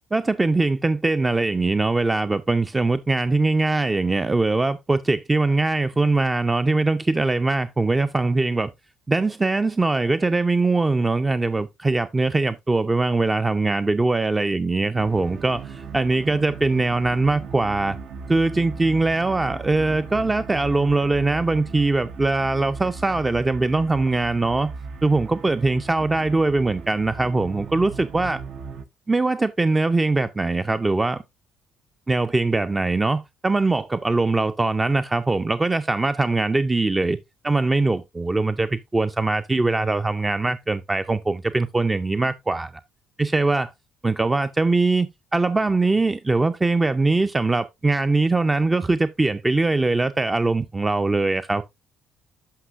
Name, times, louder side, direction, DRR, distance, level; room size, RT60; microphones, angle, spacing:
voice 1, 0.1-8.7 9.1-18.0 18.3-24.7 25.0-28.4 29.1-31.2 32.1-37.2 37.4-42.7 43.2-43.7 44.0-45.1 45.3-51.6, right 3 dB, 20° right, 0.4 m, -22 dB
sound 1, 15.0-28.9, right 5 dB, 65° right, 0.7 m, -37 dB
11.5 x 5.5 x 2.4 m
supercardioid pair, 60°, 0 cm